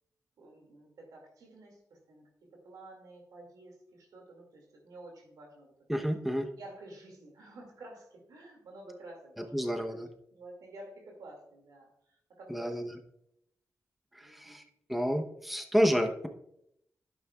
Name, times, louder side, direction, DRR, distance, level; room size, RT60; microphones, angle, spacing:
voice 1, 0.4-5.7 6.5-10.0 10.3-12.9 14.2-14.6, right 2 dB, 85° right, 1 dB, 2.3 m, -51 dB
voice 2, 5.9-6.5 9.5-10.1 12.5-12.9 14.1-14.6 14.9-16.3, equal, ahead, 5 dB, 0.9 m, -29 dB
11.0 x 8.7 x 2.4 m, 0.77 s
cardioid pair, 50°, 6 cm